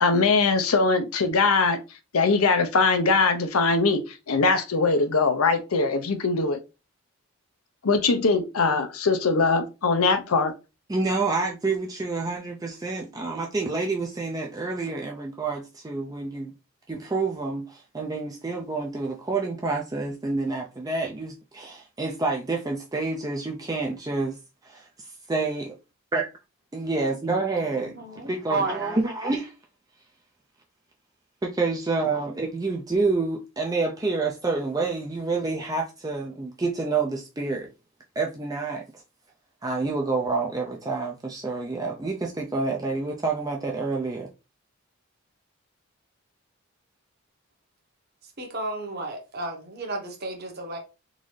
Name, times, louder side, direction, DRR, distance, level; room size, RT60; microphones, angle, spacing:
voice 1, 0.0-1.8 2.1-6.6 7.8-10.5, left 4 dB, 80° left, 0.7 m, -21 dB
voice 2, 10.9-16.5 16.9-25.7 26.1-26.3 26.7-28.0 28.2-29.5 31.4-37.7 38.2-39.0 39.6-44.3, right 3 dB, 15° right, 0.4 m, -28 dB
voice 3, 27.5-29.0 48.2-50.8, right 2 dB, 45° right, 1.0 m, -33 dB
3.8 x 2.6 x 3.1 m
head